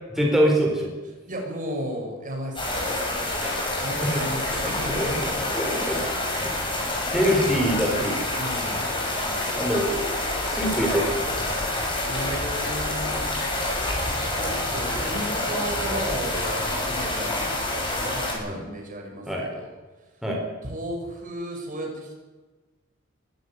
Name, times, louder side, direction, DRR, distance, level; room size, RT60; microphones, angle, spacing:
voice 1, 0.1-0.9 3.4-3.6 4.9-5.1 5.5-6.0 6.3-6.4 7.1-8.2 9.6-10.1 10.5-11.4 18.5-18.6 19.3-19.5 20.2-20.4, equal, ahead, -1 dB, 4.6 m, -24 dB
voice 2, 1.3-3.2 3.8-7.1 8.3-8.9 12.1-13.4 14.4-19.7 20.6-22.1, right 1 dB, 40° right, 1 dB, 6.6 m, -35 dB
sound 1, 2.6-18.3, left 1 dB, 25° left, 7.6 m, -27 dB
23.0 x 14.0 x 9.4 m, 1.3 s
head